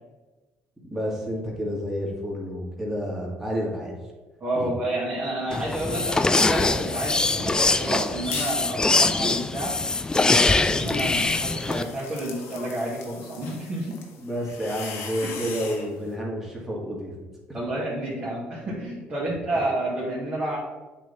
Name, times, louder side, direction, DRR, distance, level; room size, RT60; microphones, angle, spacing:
voice 1, 0.9-3.9 4.6-4.7 14.2-17.2, equal, 10° right, -4 dB, 2.1 m, -30 dB
voice 2, 4.4-9.7 10.2-14.0 15.2-15.3 17.5-20.6, right 1 dB, 30° right, -7 dB, 2.1 m, -30 dB
sound 1, 5.5-11.8, left 3 dB, 15° left, 0.4 m, -23 dB
sound 2, 8.3-8.7 9.1-15.9, left 5 dB, 80° left, 1.1 m, -40 dB
8.0 x 3.4 x 4.1 m, 1.2 s
cardioid pair, 95°, 4 cm